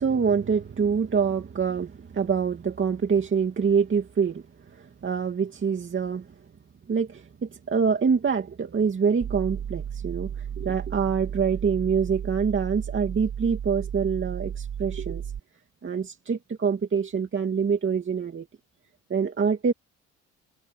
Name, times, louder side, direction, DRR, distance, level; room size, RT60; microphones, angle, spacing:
voice 1, 0.0-6.3 6.9-15.2 15.8-18.5 19.1-19.7, right 6 dB, 40° right, 2.6 m, -25 dB
basscapes Subbassonly, 9.2-15.4, right 8 dB, 55° right, 1.9 m, -34 dB
cardioid pair, 90°, 30 cm